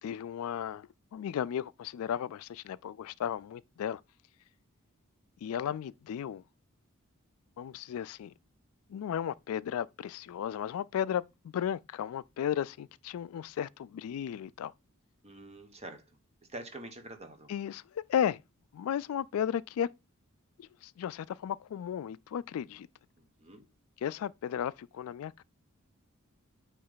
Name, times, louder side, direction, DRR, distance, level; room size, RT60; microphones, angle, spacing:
voice 1, 0.0-4.0 5.4-6.4 7.6-8.3 8.9-14.7 17.5-18.4 18.7-19.9 20.6-22.9 24.0-25.4, left 9 dB, 75° left, 0.3 m, -34 dB
voice 2, 15.2-16.1 16.5-17.5 23.2-23.7, right 2 dB, 30° right, 1.2 m, -46 dB
8.6 x 3.2 x 3.9 m
head